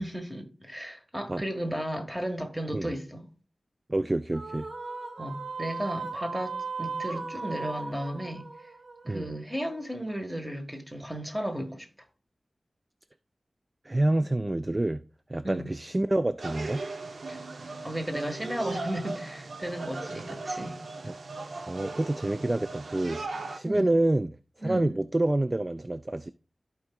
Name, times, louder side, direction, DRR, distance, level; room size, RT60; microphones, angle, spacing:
voice 1, 0.0-3.3 5.2-8.5 9.1-11.9 15.4-15.7 17.3-17.4 17.8-20.8 23.6-23.9 24.6-24.9, equal, 10° right, 1.5 m, -34 dB
voice 2, 3.9-4.7 9.1-9.3 13.8-15.0 15.3-16.8 20.5-20.6 21.0-21.2 21.7-24.4 24.6-26.3, right 1 dB, 25° right, 0.3 m, -27 dB
sound 1, 4.3-9.8, right 4 dB, 60° right, 1.1 m, -37 dB
sound 2, 16.4-23.6, right 3 dB, 85° right, 0.7 m, -38 dB
14.5 x 4.8 x 2.3 m
wide cardioid pair, 90°, 0 cm